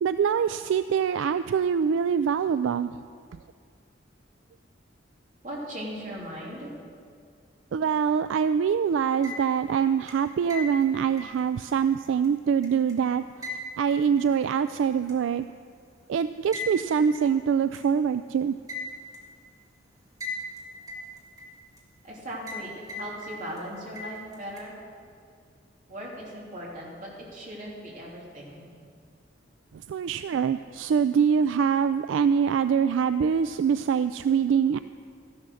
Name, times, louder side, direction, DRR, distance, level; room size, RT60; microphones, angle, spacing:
voice 1, 0.0-3.0 7.7-15.5 16.1-18.6 29.9-34.8, right 7 dB, 70° right, 12 dB, 0.3 m, -24 dB
voice 2, 5.4-6.7 22.0-24.7 25.9-28.7, equal, 45° right, -4 dB, 3.2 m, -38 dB
sound 1, 9.0-9.7 10.1-12.9 13.4-14.7 15.1-15.2 16.5-16.7 17.1-17.2 17.7-17.8 18.7-19.2 20.2-20.6 20.9-21.8 22.5-22.6 22.9-23.6 24.0-24.6, left 2 dB, 20° right, 1.8 m, -38 dB
13.5 x 11.0 x 6.3 m, 2.2 s
head